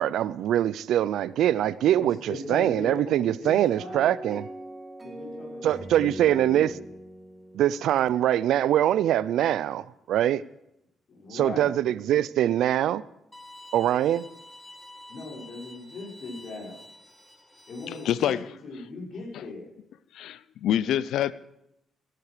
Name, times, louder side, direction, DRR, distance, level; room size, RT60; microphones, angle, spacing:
voice 1, 0.0-4.5 5.6-6.7 7.5-10.4 11.3-13.0 13.7-14.2, right 11 dB, 80° right, 0.4 m, -23 dB
voice 2, 2.0-4.1 5.0-5.9 6.2-6.7 11.1-11.7 15.1-16.8 17.7-18.3 18.6-19.7, left 2 dB, 55° left, 6.3 m, -39 dB
sound 1, 3.7-8.8, right 1 dB, 20° right, 3.4 m, -42 dB
Bowed string instrument, 13.3-18.3, left 1 dB, 10° left, 1.5 m, -49 dB
voice 3, 17.9-18.4 19.3-19.4 20.1-21.3, left 11 dB, 80° left, 0.5 m, -26 dB
17.0 x 11.0 x 4.9 m
cardioid pair, 90°, 0 cm